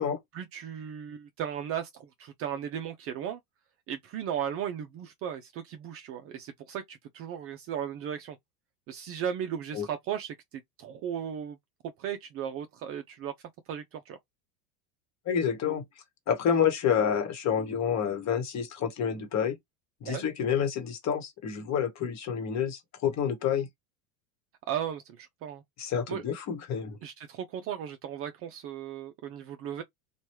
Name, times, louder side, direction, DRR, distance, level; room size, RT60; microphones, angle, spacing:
voice 1, 0.3-3.4 3.9-8.4 8.9-11.6 11.8-13.3 13.7-14.2 20.0-20.2 24.7-25.6 26.1-26.2 27.0-29.8, right 9 dB, 35° right, 0.4 m, -36 dB
voice 2, 15.3-15.8 16.3-19.6 20.0-23.7 25.8-27.0, left 8 dB, 35° left, 1.1 m, -28 dB
3.0 x 2.3 x 2.9 m
supercardioid pair, 105°, 45 cm